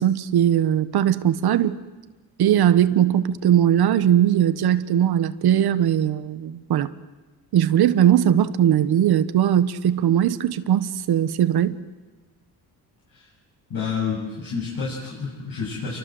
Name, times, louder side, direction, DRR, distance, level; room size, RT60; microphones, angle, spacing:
voice 1, 0.0-1.8 2.4-6.9 7.5-11.8, right 10 dB, 75° right, 13 dB, 1.4 m, -19 dB
voice 2, 13.7-16.0, left 5 dB, 65° left, -5 dB, 7.7 m, -29 dB
29.0 x 24.0 x 8.0 m, 1.2 s
cardioid pair, 135°, 38 cm